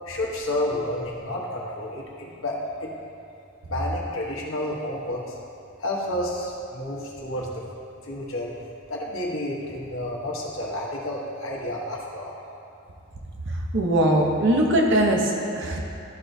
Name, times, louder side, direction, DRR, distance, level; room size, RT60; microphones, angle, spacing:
voice 1, 0.1-2.9 3.7-5.4 5.8-7.6 8.0-8.5 8.9-12.3, left 1 dB, 70° left, -3 dB, 1.2 m, -30 dB
voice 2, 13.7-15.8, right 1 dB, 60° right, 0 dB, 0.9 m, -21 dB
12.0 x 4.5 x 2.7 m, 2.6 s
head